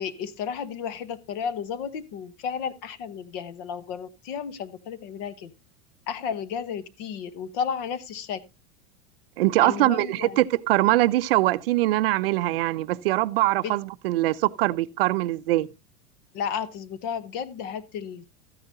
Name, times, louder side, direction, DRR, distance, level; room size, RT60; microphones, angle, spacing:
voice 1, 0.0-5.5 6.1-8.4 9.6-10.4 13.6-13.7 16.3-18.3, left 7 dB, 40° left, 0.8 m, -33 dB
voice 2, 9.4-15.7, right 17 dB, 60° right, 0.5 m, -22 dB
13.5 x 9.6 x 2.6 m
supercardioid pair, 165°, 33 cm